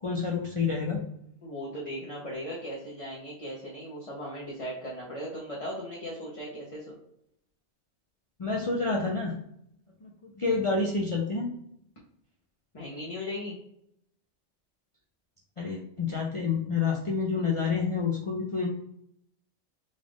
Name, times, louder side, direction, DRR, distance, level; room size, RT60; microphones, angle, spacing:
voice 1, 0.0-1.1 8.4-9.4 10.0-11.5 15.6-18.7, left 4 dB, 50° left, -2 dB, 0.4 m, -28 dB
voice 2, 1.4-6.9 12.7-13.6, equal, 35° left, -5 dB, 0.8 m, -38 dB
3.9 x 2.5 x 3.4 m, 0.74 s
omnidirectional pair, 1.2 m